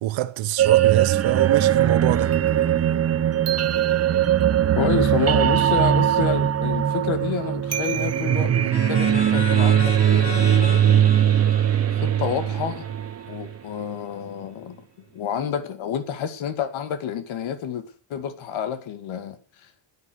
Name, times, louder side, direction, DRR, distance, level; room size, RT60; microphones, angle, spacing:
voice 1, 0.0-2.4, right 15 dB, 80° right, 1.0 m, -25 dB
sound 1, 0.6-13.6, right 10 dB, 35° right, 0.7 m, -20 dB
voice 2, 4.8-11.1 12.0-12.8 13.3-14.8 15.1-19.4, left 8 dB, 90° left, 2.2 m, -29 dB
sound 2, 8.7-13.3, left 6 dB, 60° left, 2.6 m, -36 dB
11.0 x 9.6 x 8.1 m
cardioid pair, 155°, 46 cm